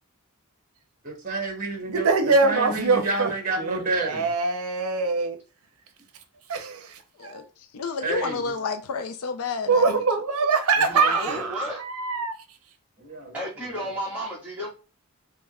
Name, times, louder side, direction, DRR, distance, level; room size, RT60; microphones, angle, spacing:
voice 1, 1.0-2.1 2.4-4.3 8.0-8.5 10.9-11.4 13.0-13.9, right 2 dB, 40° right, 1.2 m, -30 dB
voice 2, 1.9-5.4 6.5-7.4 9.7-12.4, right 4 dB, 80° right, 0.6 m, -24 dB
voice 3, 7.7-9.8, left 4 dB, 80° left, 0.4 m, -30 dB
voice 4, 10.9-11.8 13.3-14.7, equal, 5° right, 1.6 m, -32 dB
3.5 x 3.0 x 2.3 m
head